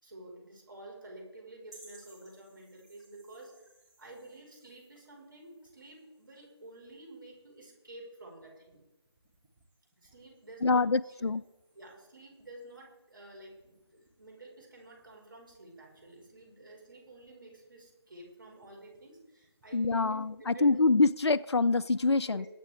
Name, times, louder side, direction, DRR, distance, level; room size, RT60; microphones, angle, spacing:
voice 1, 0.0-3.7 4.0-8.8 10.0-11.4 11.7-20.8 22.3-22.5, right 2 dB, 50° right, -1 dB, 5.1 m, -51 dB
sound 1, 1.6-21.3, right 2 dB, ahead, 1.7 m, -65 dB
voice 2, 10.6-11.4 19.7-22.5, left 3 dB, 80° left, 14 dB, 0.4 m, -25 dB
21.0 x 8.9 x 3.6 m, 1.0 s
figure-of-eight pair, 160°, 14 cm